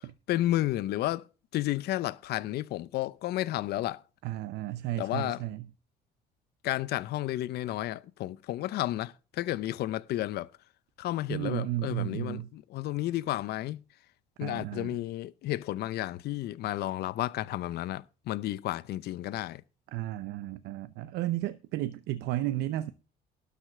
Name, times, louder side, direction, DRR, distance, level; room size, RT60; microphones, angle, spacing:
voice 1, 0.3-1.2 1.5-4.0 5.0-5.4 6.6-10.5 11.0-13.8 14.4-19.6, left 15 dB, 70° left, 0.7 m, -32 dB
voice 2, 4.2-5.7 11.3-12.5 14.4-15.0 19.9-22.9, right 14 dB, 85° right, 0.7 m, -33 dB
12.5 x 5.1 x 7.5 m
cardioid pair, 110°, 17 cm